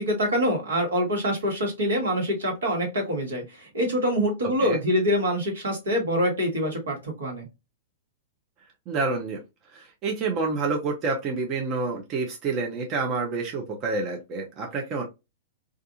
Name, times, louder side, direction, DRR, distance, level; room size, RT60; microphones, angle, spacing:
voice 1, 0.0-7.5, equal, 75° right, 1 dB, 1.2 m, -25 dB
voice 2, 8.9-9.4 9.7-15.0, right 3 dB, 35° right, 1 dB, 0.7 m, -28 dB
2.4 x 2.4 x 2.7 m, 0.24 s
figure-of-eight pair, 105°, 0 cm